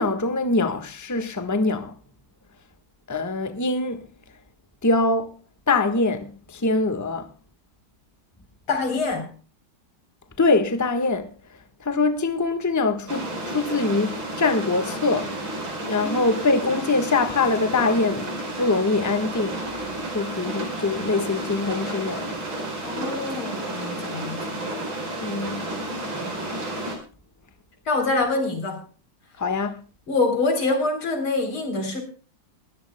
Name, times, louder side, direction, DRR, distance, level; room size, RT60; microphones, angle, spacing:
voice 1, 0.0-1.9 3.1-4.1 4.8-5.4 5.7-7.3 10.4-11.3 11.8-15.3 15.9-18.3 18.6-19.6 20.1-22.3 25.2-25.7 29.4-29.8, left 3 dB, 10° left, 1.1 m, -23 dB
voice 2, 8.7-9.3 16.0-16.3 22.8-24.6 27.9-28.8 30.1-32.0, left 3 dB, 90° left, 4.6 m, -25 dB
sound 1, 13.1-27.0, right 1 dB, 70° right, 5.4 m, -31 dB
22.0 x 14.5 x 2.2 m
omnidirectional pair, 2.2 m